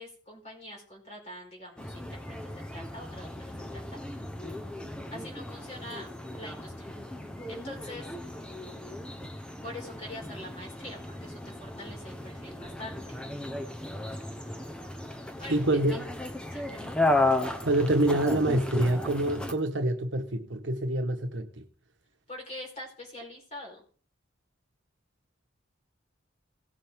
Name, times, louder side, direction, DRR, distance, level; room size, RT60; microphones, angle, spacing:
voice 1, 0.0-4.0 5.1-6.1 6.4-6.9 7.5-8.2 9.6-13.2 15.2-16.0 16.5-16.9 22.3-23.8, left 1 dB, 35° left, 4.3 m, -44 dB
sound 1, 1.8-19.5, left 2 dB, 5° left, 0.9 m, -34 dB
voice 2, 15.5-16.1 17.6-21.6, right 1 dB, 70° right, 1.2 m, -26 dB
17.5 x 7.4 x 3.6 m
head